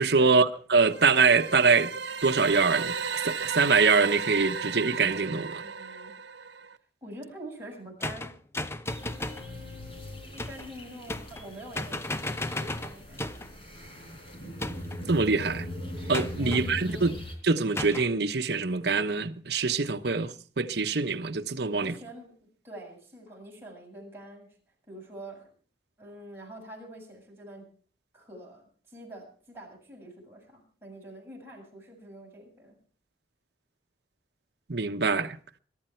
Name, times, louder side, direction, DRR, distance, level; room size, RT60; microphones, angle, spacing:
voice 1, 0.0-1.9 2.2-3.0 3.2-5.6 15.1-15.7 16.1-17.1 17.4-22.0 34.7-35.4, right 4 dB, 65° right, 1.0 m, -24 dB
sound 1, 0.8-6.8, right 6 dB, 85° right, 1.1 m, -35 dB
voice 2, 5.4-6.1 7.0-8.3 8.9-13.6 16.4-17.2 21.8-22.3 22.6-24.5 24.9-25.5 26.0-27.7 28.1-32.8, right 1 dB, 15° right, 7.2 m, -46 dB
sound 2, 8.0-9.5 10.4-10.7 11.1-11.5 11.7-13.5 14.6-15.1 16.1-16.6 17.8-18.1, left 1 dB, 15° left, 0.7 m, -34 dB
sound 3, 8.9-17.3, left 1 dB, 30° left, 4.5 m, -40 dB
22.5 x 12.5 x 4.5 m
head